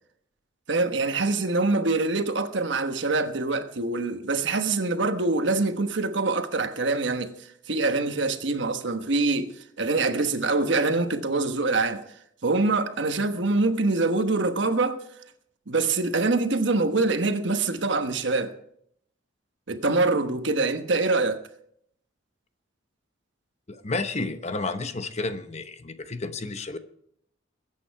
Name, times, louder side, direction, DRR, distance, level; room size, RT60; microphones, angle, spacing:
voice 1, 0.7-12.0 12.4-15.0 15.7-18.5 19.7-21.4, right 3 dB, 65° right, 1.2 m, -25 dB
voice 2, 23.7-26.8, left 3 dB, 35° left, 0.9 m, -31 dB
21.0 x 8.7 x 4.7 m
head